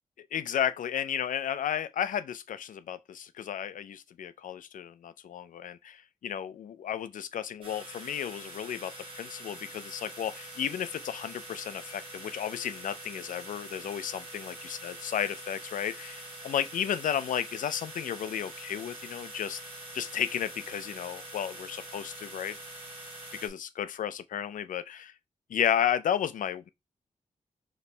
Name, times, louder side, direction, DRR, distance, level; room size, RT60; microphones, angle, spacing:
voice 1, 0.3-19.6 19.9-22.6 23.4-25.1 25.5-26.7, left 9 dB, 80° left, 0.4 m, -33 dB
sound 1, 7.6-23.5, right 1 dB, 40° right, 1.5 m, -44 dB
4.2 x 3.1 x 3.3 m
wide cardioid pair, 180°, 13 cm